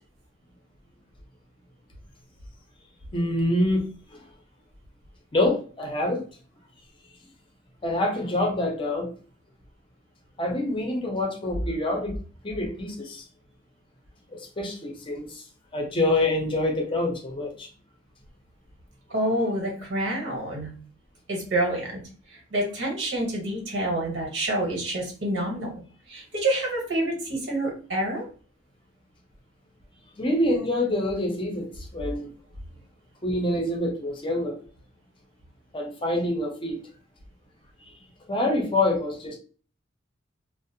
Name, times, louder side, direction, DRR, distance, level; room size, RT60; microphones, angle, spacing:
voice 1, 3.1-3.9 5.3-6.2 7.8-9.1 10.4-12.1 12.4-13.2 14.3-15.4 15.7-17.7 19.2-19.4 30.2-32.3 33.2-34.6 35.7-36.8 38.3-39.4, left 1 dB, 30° left, 0 dB, 0.6 m, -26 dB
voice 2, 19.1-20.7 21.3-22.0 22.5-25.8 26.1-28.2, right 1 dB, 75° right, 0 dB, 1.1 m, -27 dB
2.4 x 2.0 x 2.7 m, 0.40 s
head